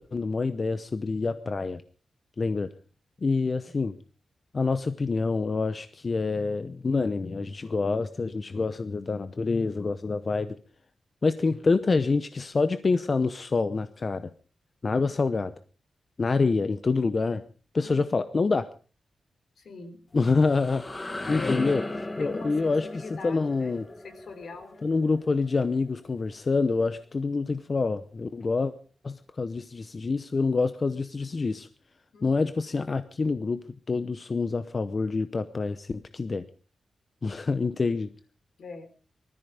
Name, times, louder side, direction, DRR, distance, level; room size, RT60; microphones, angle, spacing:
voice 1, 0.1-1.8 2.4-2.7 3.2-3.9 4.5-10.6 11.2-14.3 14.8-15.5 16.2-17.4 17.7-18.7 20.1-20.8 21.3-21.8 22.2-23.9 24.8-28.7 29.0-31.7 32.2-36.5 37.2-38.1, left 4 dB, 35° left, 11 dB, 0.8 m, -26 dB
voice 2, 19.6-20.0 21.3-21.6 22.2-23.8 24.0-24.9 32.1-32.5 38.6-38.9, left 4 dB, 70° left, 8 dB, 3.8 m, -43 dB
sound 1, 20.1-25.9, left 2 dB, 20° left, 1.1 m, -36 dB
20.0 x 14.0 x 5.1 m, 0.39 s
wide cardioid pair, 155°, 0 cm